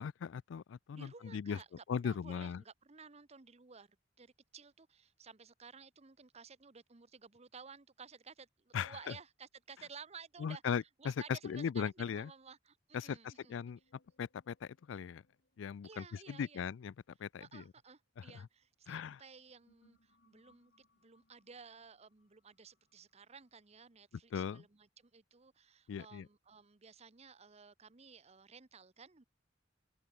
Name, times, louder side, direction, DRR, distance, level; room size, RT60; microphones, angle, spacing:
voice 1, 0.0-1.6 1.9-2.6 8.7-8.9 10.4-12.3 12.9-13.8 14.2-15.2 15.6-16.9 17.2-17.6 18.9-19.2 24.3-24.6 25.9-26.3, left 7 dB, 85° left, 0.4 m, -38 dB
voice 2, 0.9-13.8 15.8-16.7 17.4-29.2, right 5 dB, 35° right, 1.0 m, -55 dB
sound 1, 13.4-18.7 19.3-24.2, left 2 dB, 65° left, 7.2 m, -76 dB
head